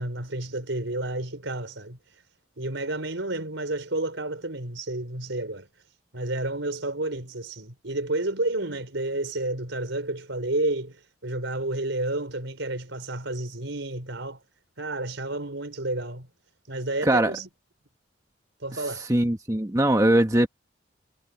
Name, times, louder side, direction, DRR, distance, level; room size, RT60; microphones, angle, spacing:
voice 1, 0.0-2.0 2.6-5.7 6.1-14.4 14.8-16.3 16.7-17.5 18.6-19.1, right 2 dB, 80° right, 4.5 m, -30 dB
voice 2, 17.0-17.4 19.1-20.5, right 1 dB, 20° right, 1.3 m, -21 dB
head